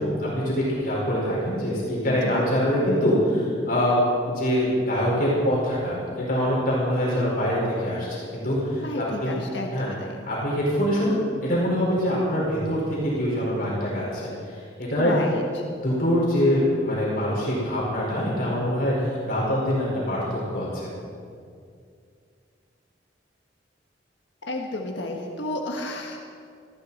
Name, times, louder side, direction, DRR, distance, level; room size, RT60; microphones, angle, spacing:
voice 1, 0.0-4.0 4.3-9.4 9.7-9.9 10.3-15.1 15.8-20.9, equal, 50° left, -6 dB, 5.0 m, -24 dB
voice 2, 2.0-2.4 7.0-7.2 8.8-10.2 15.0-15.7 24.5-26.2, left 1 dB, 80° left, 1 dB, 1.5 m, -32 dB
18.5 x 15.0 x 4.3 m, 2.3 s
head